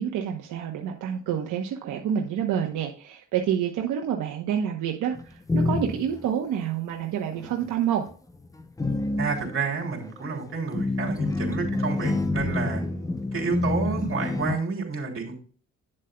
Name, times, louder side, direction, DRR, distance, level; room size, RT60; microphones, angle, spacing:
voice 1, 0.0-8.0, right 9 dB, 85° right, 2 dB, 1.0 m, -28 dB
sound 1, 5.1-6.3 7.3-7.7 8.1-14.6, left 2 dB, 10° left, 0.6 m, -28 dB
voice 2, 9.2-12.8 13.3-15.4, right 5 dB, 45° right, 0 dB, 3.3 m, -30 dB
9.1 x 7.5 x 2.3 m, 0.40 s
cardioid pair, 90°, 30 cm